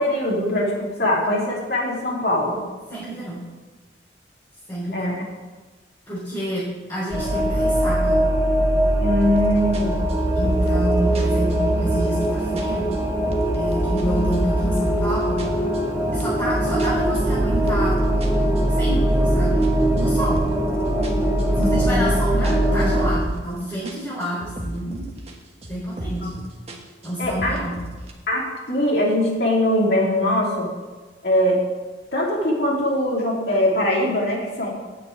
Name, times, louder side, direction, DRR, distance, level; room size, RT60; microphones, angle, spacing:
voice 1, 0.0-2.7 4.9-5.3 9.0-10.1 21.6-22.0 26.2-26.3 27.2-27.5 28.3-30.7 31.2-31.6 32.1-34.7, left 1 dB, 60° left, -3 dB, 2.7 m, -22 dB
voice 2, 2.9-3.4 4.7-5.2 6.1-8.2 10.3-12.9 13.5-15.5 16.1-18.0 18.5-19.5 19.9-20.4 21.6-25.0 25.7-26.3 27.0-27.8, right 1 dB, 20° left, -10 dB, 3.8 m, -28 dB
sound 1, 7.1-23.1, right 1 dB, 15° right, 1.8 m, -21 dB
sound 2, 9.2-9.4 9.7-12.3 12.6-14.1 14.3-15.0 15.4-17.9 18.2-20.7 21.0-23.6 23.8-25.4 25.6-26.3 26.7-28.1, right 1 dB, 35° right, 1.4 m, -34 dB
9.1 x 6.5 x 8.4 m, 1.3 s
head